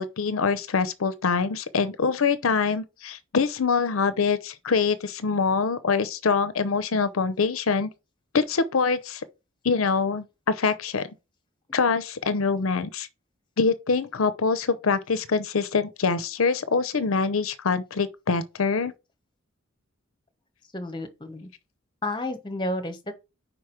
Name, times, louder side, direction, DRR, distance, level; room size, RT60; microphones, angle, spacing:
voice 1, 0.0-7.9 8.3-9.2 9.6-11.1 11.7-13.1 13.6-18.9, left 5 dB, 75° left, 0.7 m, -24 dB
voice 2, 20.7-21.5 22.0-23.2, left 1 dB, 20° left, 1.2 m, -31 dB
5.1 x 4.9 x 5.8 m
head